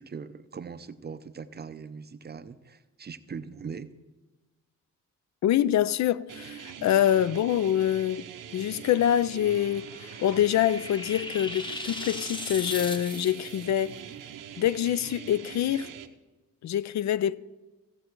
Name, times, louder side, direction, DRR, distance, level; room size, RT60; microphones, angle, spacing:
voice 1, 0.0-4.0, right 6 dB, 30° right, 0.6 m, -41 dB
voice 2, 5.4-8.3 8.5-13.9 14.6-15.9 16.6-17.4, left 11 dB, 60° left, 0.5 m, -25 dB
sound 1, 6.3-16.1, right 9 dB, 80° right, 0.9 m, -43 dB
sound 2, 9.5-13.7, left 1 dB, 15° left, 0.9 m, -38 dB
16.0 x 7.5 x 4.6 m
cardioid pair, 100°, 32 cm